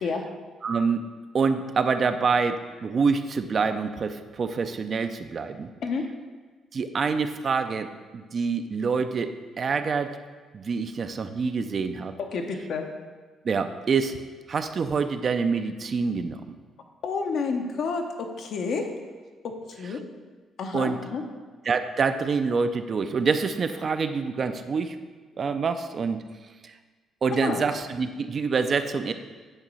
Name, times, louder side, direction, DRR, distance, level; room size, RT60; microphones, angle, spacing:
voice 1, 0.6-1.0 1.3-5.7 6.7-10.1 10.5-12.1 13.4-14.2 14.5-16.6 20.7-21.0 21.7-25.0 25.4-26.2 26.6-26.7 27.2-29.1, right 5 dB, 45° right, 9 dB, 0.4 m, -26 dB
voice 2, 12.3-12.9 17.0-18.9 19.4-20.0 20.6-21.2 27.4-27.7, left 4 dB, 70° left, 4 dB, 0.8 m, -29 dB
8.8 x 3.0 x 5.5 m, 1.4 s
cardioid pair, 90°, 0 cm